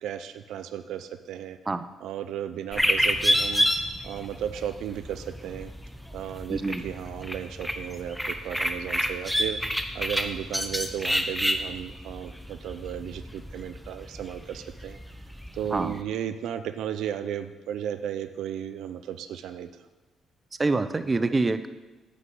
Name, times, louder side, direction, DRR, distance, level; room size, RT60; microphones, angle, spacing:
voice 1, 0.0-1.6 2.0-3.7 4.0-5.7 6.1-9.6 9.9-15.0 15.5-19.7, right 10 dB, 80° right, 10 dB, 0.6 m, -34 dB
sound 1, 2.7-16.0, equal, ahead, 1.0 m, -30 dB
voice 2, 6.5-6.8 15.7-15.9 20.6-21.7, right 3 dB, 25° right, 11 dB, 0.7 m, -26 dB
9.5 x 6.5 x 7.7 m, 1.2 s
cardioid pair, 90°, 0 cm